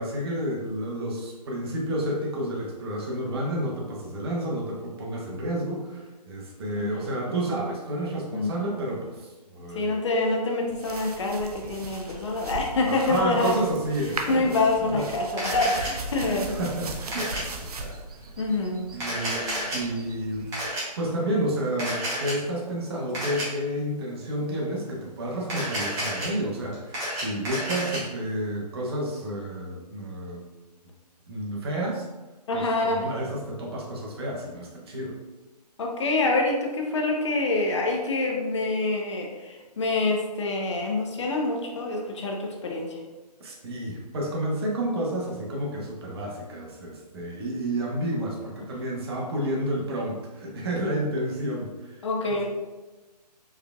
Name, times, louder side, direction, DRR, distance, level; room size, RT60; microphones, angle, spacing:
voice 1, 0.0-9.9 12.9-14.6 14.9-15.0 16.2-18.2 18.9-19.5 19.7-20.5 21.0-30.4 31.3-32.0 32.5-32.7 32.9-35.2 43.4-52.4, right 1 dB, 35° right, -2 dB, 0.9 m, -30 dB
voice 2, 6.7-7.4 8.3-8.5 9.7-13.5 14.3-16.6 18.4-18.9 32.5-33.1 35.8-43.0 52.0-52.4, left 2 dB, 45° left, 0 dB, 0.7 m, -26 dB
sound 1, 10.7-20.7, right 3 dB, 65° right, 0.6 m, -39 dB
Camera, 15.4-15.9 17.1-17.4 18.9-19.8 20.5-20.8 21.8-22.3 23.1-23.4 25.4-26.3 26.7-28.0, right 1 dB, 15° right, 1.1 m, -30 dB
4.6 x 3.3 x 2.3 m, 1.2 s
figure-of-eight pair, 145°, 21 cm